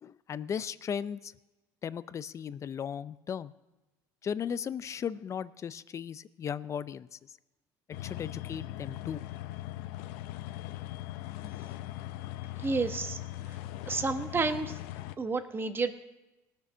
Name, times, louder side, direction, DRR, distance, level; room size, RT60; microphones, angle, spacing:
voice 1, 0.0-1.3 1.8-3.5 4.2-7.2 8.0-9.2 11.4-11.5, left 8 dB, 35° left, 16 dB, 0.5 m, -36 dB
sound 1, 7.9-15.1, left 15 dB, 80° left, 0.6 m, -40 dB
voice 2, 12.6-13.2 13.9-14.8 15.2-15.9, right 4 dB, 25° right, 9 dB, 1.1 m, -30 dB
19.0 x 7.0 x 6.1 m, 1.0 s
supercardioid pair, 95°, 8 cm